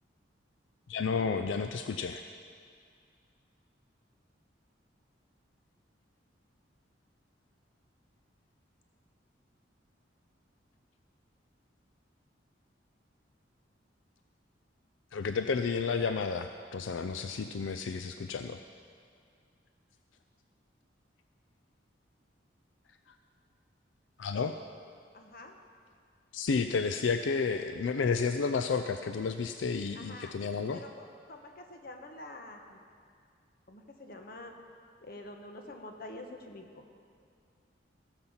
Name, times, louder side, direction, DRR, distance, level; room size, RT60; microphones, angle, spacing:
voice 1, 0.9-2.2 15.1-18.6 24.2-24.5 26.3-30.8, left 5 dB, 85° left, 8 dB, 0.4 m, -31 dB
voice 2, 25.1-25.5 29.9-30.3 30.7-32.8 33.7-34.5 35.0-36.8, left 2 dB, 50° left, 3 dB, 1.2 m, -47 dB
16.5 x 7.1 x 5.6 m, 2.2 s
head